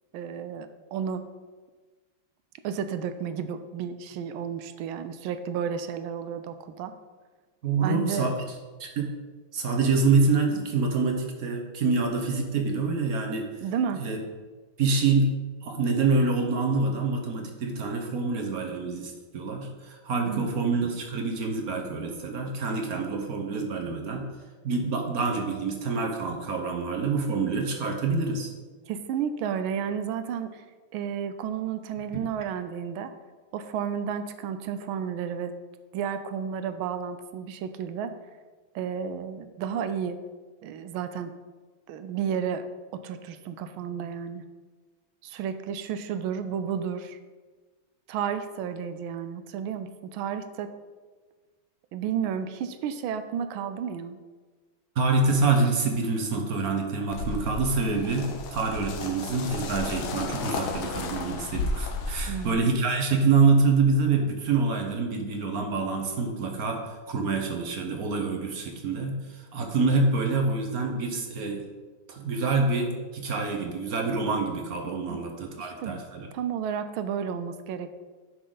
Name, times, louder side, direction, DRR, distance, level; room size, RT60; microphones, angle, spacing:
voice 1, 0.1-1.3 2.6-6.9 7.8-8.3 13.6-14.0 20.3-20.5 28.9-30.6 30.9-33.1 33.5-35.5 35.9-38.1 38.7-40.2 40.6-41.3 41.9-42.7 42.9-44.4 45.2-47.2 48.1-50.7 51.9-54.2 62.3-62.7 75.1-75.2 75.6-76.0 76.3-77.9, right 7 dB, 85° right, 10 dB, 1.5 m, -32 dB
voice 2, 7.6-8.3 8.8-9.1 9.5-13.5 14.0-14.2 14.8-15.4 15.6-24.3 24.6-28.5 55.0-71.6 72.1-76.3, right 4 dB, 50° right, 2 dB, 1.3 m, -26 dB
sound 1, 57.1-62.5, left 3 dB, 90° left, 1.7 m, -33 dB
11.0 x 5.8 x 3.9 m, 1.4 s
omnidirectional pair, 2.2 m